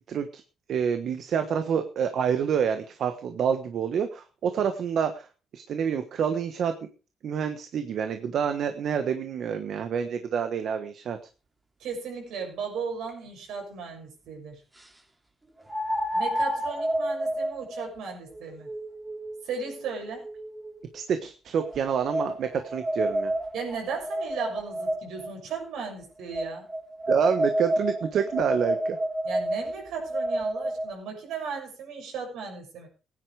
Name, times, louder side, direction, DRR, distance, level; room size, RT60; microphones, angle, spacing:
voice 1, 0.1-0.4 0.7-5.3 5.5-6.7 7.2-11.2 20.9-23.3 27.1-29.0, right 7 dB, 65° right, 8 dB, 1.3 m, -27 dB
voice 2, 11.8-14.6 16.1-18.7 19.4-20.3 23.5-26.7 29.2-32.9, right 5 dB, 80° right, 2 dB, 6.5 m, -36 dB
sound 1, 13.1-13.2 15.7-20.9 21.6-25.3 26.3-30.9, right 1 dB, 15° right, 2.5 m, -30 dB
16.5 x 9.9 x 4.8 m, 0.35 s
cardioid pair, 90°, 0 cm